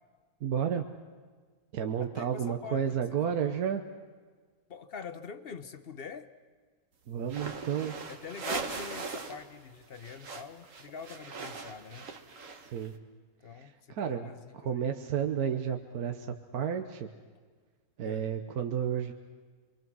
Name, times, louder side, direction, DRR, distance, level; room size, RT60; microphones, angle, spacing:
voice 1, 0.4-0.9 1.7-3.8 7.1-7.9 12.7-12.9 13.5-14.3 14.6-17.1 18.0-19.1, right 8 dB, 70° right, 6 dB, 1.4 m, -31 dB
voice 2, 2.0-3.6 4.7-6.3 8.1-12.1 13.4-14.9 18.0-18.3, left 6 dB, 45° left, 11 dB, 1.0 m, -45 dB
sound 1, 7.2-9.5 9.7-12.9, right 4 dB, 55° right, 1.6 m, -40 dB
27.0 x 23.5 x 6.2 m, 1.5 s
omnidirectional pair, 1.7 m